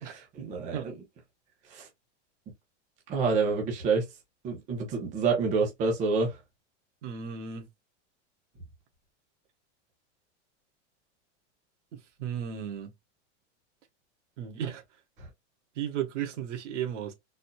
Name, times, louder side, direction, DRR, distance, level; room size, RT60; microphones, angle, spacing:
voice 1, 0.0-0.9 1.7-1.9 3.1-4.0 4.4-6.4, right 4 dB, 20° right, 1.0 m, -28 dB
voice 2, 7.0-7.7 12.2-12.9 14.4-14.8 15.7-17.1, right 9 dB, 90° right, 1.6 m, -34 dB
4.1 x 2.8 x 2.3 m
supercardioid pair, 175°, 35 cm